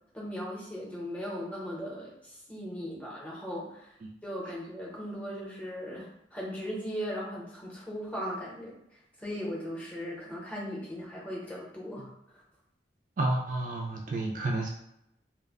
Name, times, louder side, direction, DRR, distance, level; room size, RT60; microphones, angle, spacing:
voice 1, 0.1-3.9 4.2-8.8 9.2-12.1, equal, 10° left, -6 dB, 0.7 m, -38 dB
voice 2, 13.2-14.7, right 2 dB, 45° right, 0 dB, 0.3 m, -30 dB
2.0 x 2.0 x 3.4 m, 0.80 s
head